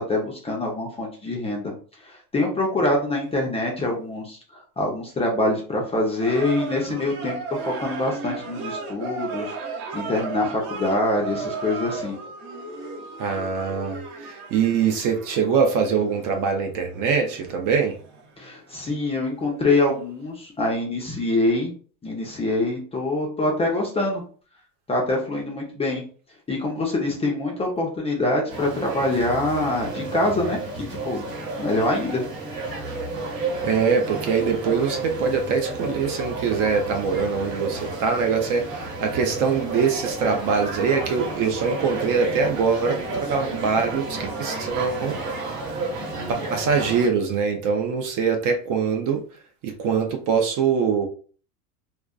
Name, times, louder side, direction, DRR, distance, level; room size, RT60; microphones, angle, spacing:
voice 1, 0.0-1.7 2.0-12.2 18.4-21.7 22.0-24.2 24.9-26.0 26.5-30.6 30.9-31.2 31.6-32.2, left 2 dB, 15° left, -1 dB, 0.5 m, -25 dB
sound 1, 6.2-19.6 19.9-20.0, right 4 dB, 65° right, 0.9 m, -35 dB
voice 2, 13.2-18.0 33.6-45.2 46.3-49.2 49.6-51.1, right 5 dB, 40° right, 4 dB, 0.5 m, -23 dB
sound 2, 28.5-47.1, right 2 dB, 85° right, 1.2 m, -32 dB
2.5 x 2.1 x 2.3 m, 0.41 s
hypercardioid pair, 105°, 47 cm